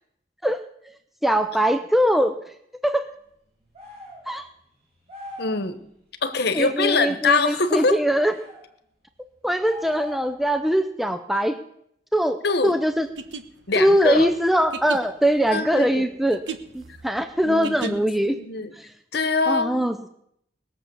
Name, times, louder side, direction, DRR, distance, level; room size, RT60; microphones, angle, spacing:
voice 1, 1.2-2.3 2.8-3.1 4.3-4.4 6.5-8.3 9.4-11.6 12.1-12.4 12.6-13.1 13.8-16.4 16.7-18.4 18.8-18.9 19.5-20.1, equal, ahead, 8 dB, 0.5 m, -22 dB
sound 1, 3.7-4.3 5.1-5.6 8.2-8.6 9.6-10.4, left 2 dB, 35° right, 6.8 m, -41 dB
voice 2, 5.4-5.8 6.2-8.0 12.4-12.8 13.7-14.3 15.5-16.1 17.4-18.7 19.1-19.7, left 4 dB, 65° left, 9 dB, 1.2 m, -24 dB
sound 2, 13.0-18.3, right 5 dB, 90° right, 1.1 m, -37 dB
20.0 x 7.2 x 6.9 m, 0.74 s
head